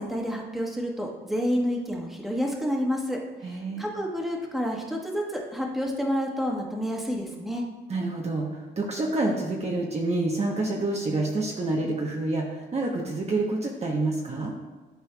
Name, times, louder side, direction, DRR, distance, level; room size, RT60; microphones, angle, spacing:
voice 1, 0.0-3.2 3.5-7.6, equal, ahead, -1 dB, 1.3 m, -29 dB
voice 2, 3.4-3.9 7.9-14.5, right 2 dB, 35° right, -1 dB, 0.9 m, -28 dB
11.5 x 4.4 x 2.3 m, 1.3 s
cardioid pair, 90°, 20 cm